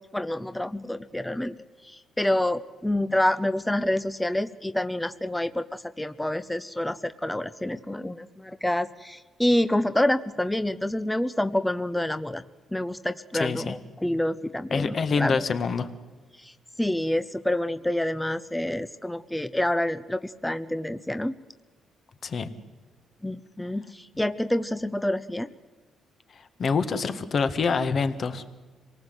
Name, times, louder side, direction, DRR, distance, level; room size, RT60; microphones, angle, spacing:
voice 1, 0.0-1.6 1.8-12.4 12.7-15.5 16.4-21.3 23.2-25.5, left 1 dB, 10° left, 12 dB, 0.8 m, -27 dB
voice 2, 13.3-13.7 14.7-15.9 22.2-22.5 26.6-28.4, left 5 dB, 50° left, 10 dB, 1.8 m, -26 dB
26.5 x 18.5 x 8.1 m, 1.4 s
cardioid pair, 90°, 0 cm